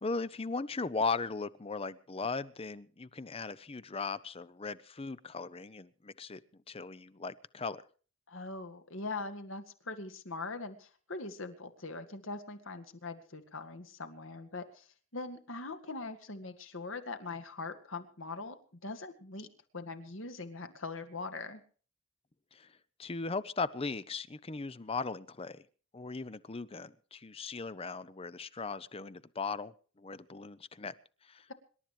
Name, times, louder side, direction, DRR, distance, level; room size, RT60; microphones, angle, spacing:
voice 1, 0.0-6.4 6.7-7.8 22.5-22.7 23.0-25.6 25.9-30.9 31.2-31.5, left 4 dB, 25° left, 16 dB, 0.6 m, -38 dB
voice 2, 8.3-14.9 15.1-19.5 19.7-21.6, left 3 dB, 65° left, 8 dB, 2.0 m, -42 dB
26.0 x 12.0 x 3.2 m, 0.41 s
head